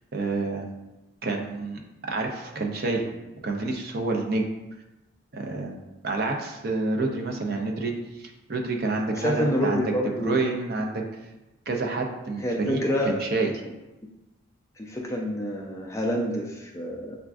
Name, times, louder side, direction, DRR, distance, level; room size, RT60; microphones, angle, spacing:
voice 1, 0.1-0.7 1.2-3.1 3.4-4.5 5.3-5.8 6.0-9.9 10.2-11.0 11.7-13.5, right 3 dB, 45° right, 2 dB, 0.5 m, -28 dB
voice 2, 9.1-10.4 12.4-13.2 14.8-17.2, equal, 15° left, 0 dB, 0.3 m, -27 dB
6.9 x 2.4 x 2.3 m, 1.0 s
head